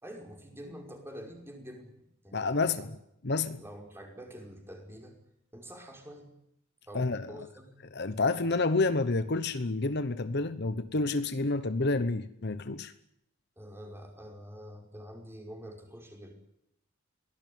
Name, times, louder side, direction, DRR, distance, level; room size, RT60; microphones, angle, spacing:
voice 1, 0.0-1.9 2.2-2.9 3.6-5.2 5.5-6.3 6.9-7.8 13.6-16.3, equal, 10° right, 5.3 m, -46 dB
voice 2, 2.3-2.9 3.2-3.6 6.9-7.3 7.9-12.9, left 3 dB, 50° left, 1.0 m, -29 dB
23.5 x 18.0 x 9.4 m
head